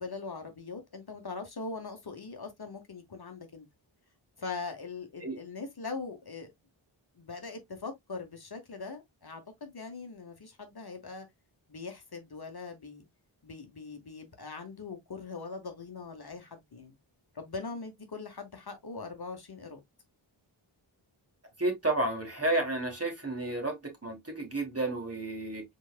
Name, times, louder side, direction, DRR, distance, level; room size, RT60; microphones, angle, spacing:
voice 1, 0.0-3.6 4.4-6.5 7.1-11.3 11.7-13.0 13.4-17.0 17.3-19.8, left 4 dB, 50° left, 1.2 m, -41 dB
voice 2, 21.6-25.6, right 2 dB, 30° right, 2.2 m, -31 dB
4.5 x 4.2 x 2.4 m
wide cardioid pair, 75°, 50 cm